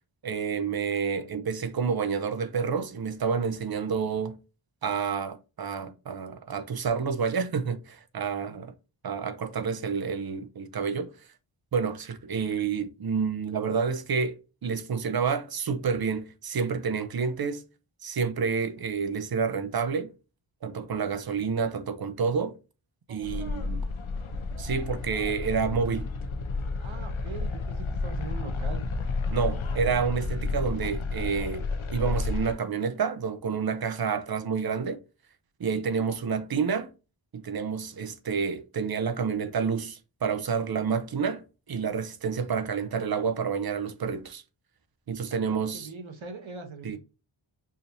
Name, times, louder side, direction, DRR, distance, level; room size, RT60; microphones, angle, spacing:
voice 1, 0.2-4.4 4.8-8.7 9.0-11.1 11.7-17.6 18.0-20.1 20.6-22.6 23.1-23.8 24.6-26.1 29.3-31.7 31.9-35.0 35.6-36.9 37.3-41.4 41.7-44.4 45.1-45.9 46.8-47.0, right 6 dB, 50° right, 0.5 m, -29 dB
voice 2, 23.1-23.9 26.8-28.9 45.5-47.0, right 4 dB, 70° right, 1.0 m, -42 dB
sound 1, 23.2-32.5, left 3 dB, 75° left, 0.7 m, -31 dB
4.9 x 2.7 x 2.6 m
wide cardioid pair, 75°, 49 cm